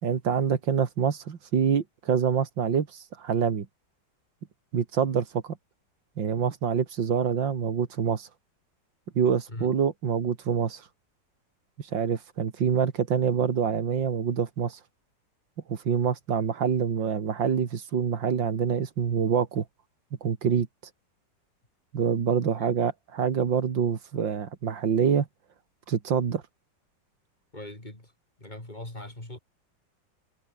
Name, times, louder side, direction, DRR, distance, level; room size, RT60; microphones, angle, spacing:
voice 1, 0.0-2.9 3.2-3.7 4.7-5.6 6.2-8.3 9.2-10.8 11.8-14.8 15.7-19.6 20.2-20.7 21.9-25.3 25.9-26.4, right 7 dB, 90° right, 2.6 m, -26 dB
voice 2, 27.5-28.1 28.4-29.4, left 1 dB, 25° left, 4.5 m, -40 dB
omnidirectional pair, 2.0 m